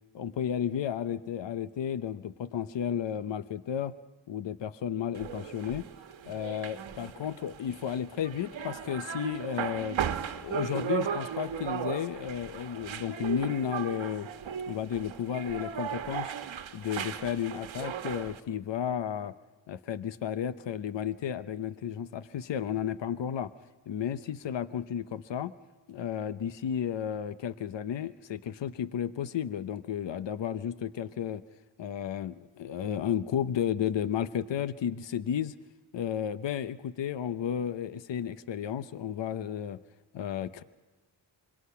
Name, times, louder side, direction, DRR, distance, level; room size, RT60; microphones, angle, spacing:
voice 1, 0.1-3.9 4.3-5.9 6.3-10.0 10.3-14.3 14.7-16.3 16.7-19.3 19.7-23.5 23.9-25.5 25.9-31.4 31.8-35.5 35.9-39.8 40.1-40.6, left 9 dB, 70° left, 13 dB, 0.8 m, -33 dB
sound 1, 5.1-18.4, right 8 dB, 85° right, 1.2 m, -36 dB
26.0 x 24.0 x 5.7 m, 1.3 s
wide cardioid pair, 100°, 46 cm